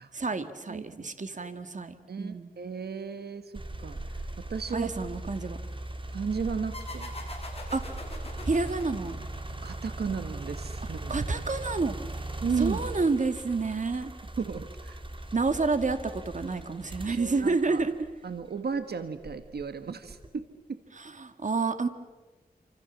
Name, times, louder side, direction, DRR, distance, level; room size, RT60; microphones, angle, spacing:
voice 1, 0.1-2.5 4.7-5.6 7.7-8.0 8.4-9.2 11.1-14.1 15.3-17.9 20.9-21.9, right 3 dB, 50° right, 9 dB, 2.1 m, -29 dB
voice 2, 0.7-1.5 2.1-4.9 6.1-7.1 9.6-11.1 12.4-12.8 14.4-15.0 17.1-17.8 18.2-20.8, right 5 dB, 90° right, 9 dB, 1.5 m, -35 dB
sound 1, 3.5-18.6 19.2-20.4, right 1 dB, 30° right, 3.2 m, -39 dB
sound 2, 6.7-10.0, left 2 dB, 40° left, 6.8 m, -43 dB
28.5 x 26.5 x 7.4 m, 1.2 s
wide cardioid pair, 80°, 16 cm